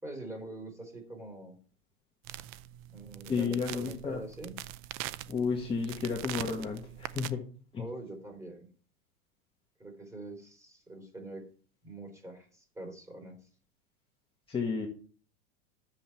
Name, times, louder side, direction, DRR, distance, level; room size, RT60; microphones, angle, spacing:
voice 1, 0.0-1.6 2.9-4.6 7.8-8.7 9.8-11.5 11.8-13.4, right 2 dB, 10° right, 3 dB, 3.6 m, -44 dB
sound 1, 2.2-7.3, right 15 dB, 40° right, 0.6 m, -43 dB
voice 2, 3.3-4.2 5.3-7.4 7.7-7.8 14.5-14.9, left 5 dB, 15° left, -1 dB, 1.7 m, -32 dB
10.5 x 7.5 x 4.5 m, 0.42 s
supercardioid pair, 130°, 32 cm